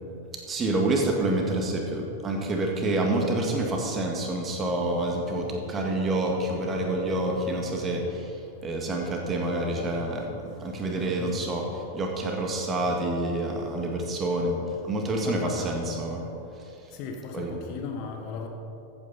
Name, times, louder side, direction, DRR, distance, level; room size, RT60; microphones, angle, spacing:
voice 1, 0.5-8.3 8.6-14.6 14.8-16.2 17.3-17.6, right 2 dB, 25° right, 1 dB, 1.8 m, -28 dB
voice 2, 11.0-11.7 15.2-15.8 16.9-18.5, left 5 dB, 45° left, 3 dB, 1.2 m, -37 dB
14.0 x 8.8 x 4.3 m, 2.9 s
figure-of-eight pair, 90°, 0 cm